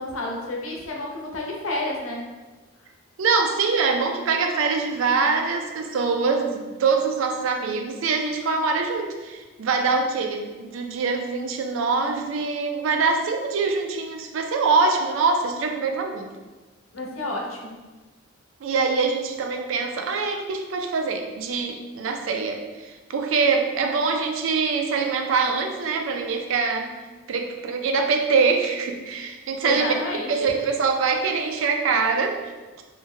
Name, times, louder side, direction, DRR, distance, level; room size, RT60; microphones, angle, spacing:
voice 1, 0.0-2.2 16.9-17.8 29.6-30.5, left 2 dB, 85° left, -1 dB, 0.6 m, -30 dB
voice 2, 3.2-16.3 18.6-26.9 27.3-29.9 30.3-32.4, right 4 dB, 75° right, 4 dB, 0.4 m, -24 dB
2.7 x 2.1 x 3.6 m, 1.2 s
head